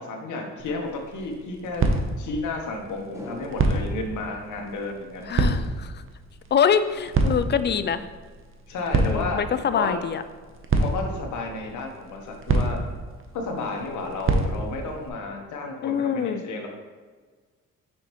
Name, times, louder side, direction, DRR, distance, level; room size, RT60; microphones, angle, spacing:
voice 1, 0.0-1.9 2.2-5.3 8.7-9.4 9.7-9.9 10.8-12.8 13.3-16.7, left 3 dB, 75° left, 2 dB, 1.2 m, -32 dB
sound 1, 0.6-15.1, right 3 dB, 45° right, 0.9 m, -29 dB
sound 2, 3.1-5.6 5.9-6.0, equal, 10° right, 1.0 m, -44 dB
voice 2, 5.3-6.0 6.5-8.0 8.9-10.2 15.8-16.4, left 7 dB, 35° left, 12 dB, 0.4 m, -24 dB
6.2 x 5.4 x 3.1 m, 1.5 s
cardioid pair, 90°, 30 cm